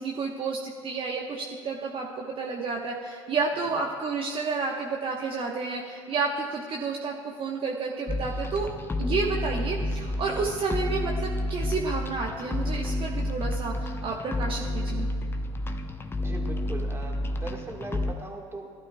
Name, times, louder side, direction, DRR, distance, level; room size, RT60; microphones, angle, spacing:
voice 1, 0.0-8.7 9.0-15.1, right 4 dB, 35° right, -1 dB, 1.1 m, -30 dB
sound 1, 8.1-18.1, left 1 dB, 15° left, 0.7 m, -30 dB
voice 2, 16.2-18.7, right 3 dB, 15° right, 2 dB, 1.6 m, -39 dB
17.0 x 12.0 x 2.3 m, 2.3 s
hypercardioid pair, 70°, 15 cm